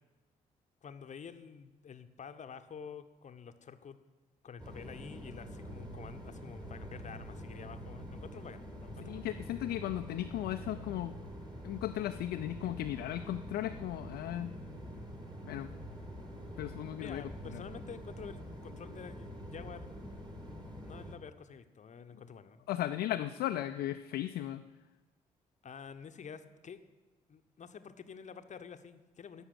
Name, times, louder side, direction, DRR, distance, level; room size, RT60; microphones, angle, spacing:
voice 1, 0.8-4.0 4.4-9.3 17.0-19.9 20.8-22.7 25.6-26.8 27.3-29.4, left 6 dB, 40° left, 10 dB, 0.9 m, -49 dB
sound 1, 4.6-21.2, equal, 20° right, 2.2 m, -46 dB
voice 2, 9.0-11.2 11.6-14.6 15.4-15.7 16.6-17.2 17.5-17.6 22.1-22.2 22.7-24.6, left 13 dB, 55° left, 7 dB, 0.5 m, -36 dB
13.5 x 5.8 x 8.1 m, 1.2 s
figure-of-eight pair, 40°, 19 cm